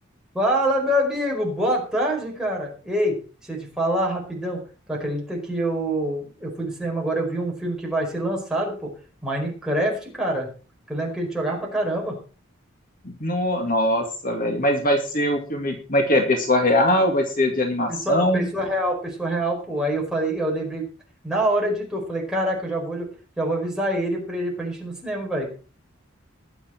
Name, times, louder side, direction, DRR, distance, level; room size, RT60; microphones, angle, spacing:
voice 1, 0.3-3.2 3.4-4.6 4.9-8.9 9.2-10.5 10.9-12.2 17.9-20.8 21.2-23.1 23.4-25.5, right 1 dB, 5° right, -1 dB, 4.8 m, -25 dB
voice 2, 13.0-18.5, left 1 dB, 40° left, 3 dB, 2.2 m, -21 dB
20.5 x 7.4 x 4.5 m, 0.38 s
head